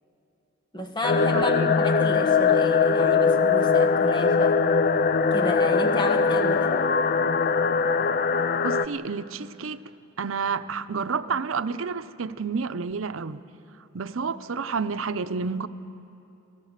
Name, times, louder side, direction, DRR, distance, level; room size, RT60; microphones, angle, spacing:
voice 1, 0.7-4.6 5.3-6.9, left 1 dB, 25° left, 4 dB, 1.4 m, -31 dB
sound 1, 1.0-8.9, left 5 dB, 45° left, 0.4 m, -21 dB
voice 2, 1.3-1.7 8.6-9.8 10.2-13.4 13.9-15.7, right 5 dB, 90° right, 12 dB, 0.6 m, -30 dB
29.5 x 15.5 x 6.6 m, 2.9 s
head